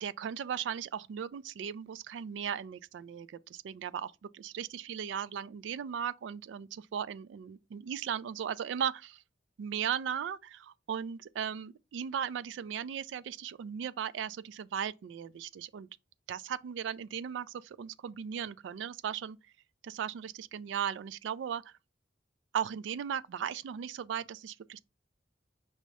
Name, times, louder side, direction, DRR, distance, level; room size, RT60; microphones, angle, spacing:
voice 1, 0.0-9.2 9.6-15.9 16.3-19.4 19.8-21.7 22.5-24.8, right 8 dB, 75° right, 0.3 m, -37 dB
5.4 x 2.0 x 4.7 m
head